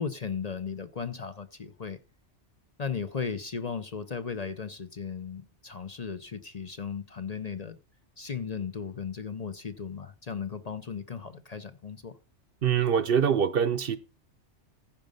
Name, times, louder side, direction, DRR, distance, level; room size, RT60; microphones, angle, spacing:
voice 1, 0.0-2.0 2.8-7.8 8.2-12.1, left 6 dB, 40° left, 0.8 m, -36 dB
voice 2, 12.6-14.0, right 7 dB, 60° right, 0.8 m, -24 dB
14.5 x 5.1 x 5.4 m
omnidirectional pair, 1.2 m